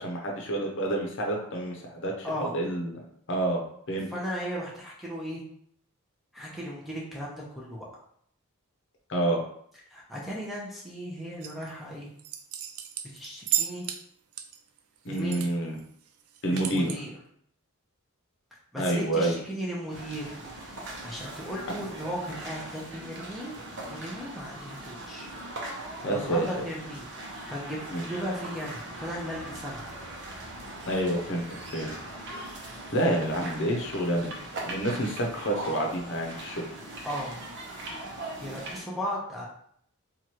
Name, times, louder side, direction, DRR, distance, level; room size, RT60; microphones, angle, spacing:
voice 1, 0.0-3.0 3.3-3.6 3.9-4.1 9.1-9.4 15.0-15.8 16.4-16.9 18.8-19.4 21.7-21.8 26.0-26.5 27.9-28.0 30.9-32.0 32.9-34.3 34.6-36.6, right 1 dB, 55° left, 0 dB, 0.7 m, -28 dB
voice 2, 4.1-5.4 6.3-7.9 9.9-12.1 13.0-13.9 15.1-15.5 16.5-17.2 18.7-20.4 21.0-23.6 23.9-25.3 26.2-29.8 37.0-37.4 38.4-39.5, equal, ahead, -4 dB, 0.7 m, -36 dB
sound 1, 11.4-11.7 12.2-14.0 14.3-15.5 15.8-15.9 16.2-17.0, right 11 dB, 75° right, 0.4 m, -33 dB
sound 2, 19.9-38.8, right 1 dB, 50° right, 0.8 m, -40 dB
3.0 x 2.5 x 4.4 m, 0.66 s
head